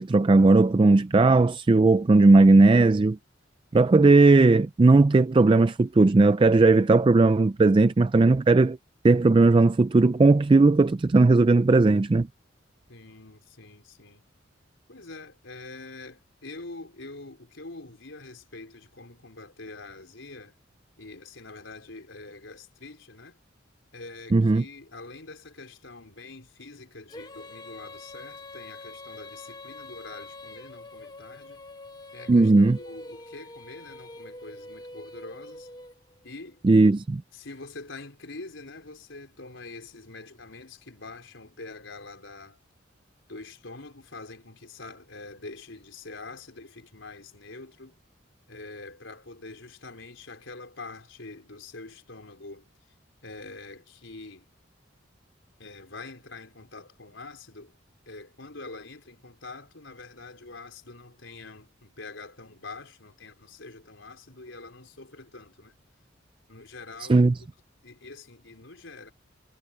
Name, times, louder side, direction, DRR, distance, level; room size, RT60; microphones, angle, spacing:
voice 1, 0.0-3.2 3.7-8.8 9.0-12.3 24.3-24.6 32.3-32.8 36.6-37.2 67.1-67.3, right 3 dB, 25° right, 0.4 m, -17 dB
voice 2, 12.9-14.2 14.9-20.6 21.0-23.4 23.9-31.6 32.1-35.7 36.2-36.6 37.3-42.6 43.3-48.0 48.5-52.6 53.2-54.5 55.6-57.7 58.1-65.8 66.5-67.4 67.8-69.1, left 3 dB, 80° left, 4.2 m, -45 dB
Female singing, 27.1-36.2, left 2 dB, 20° left, 1.1 m, -44 dB
head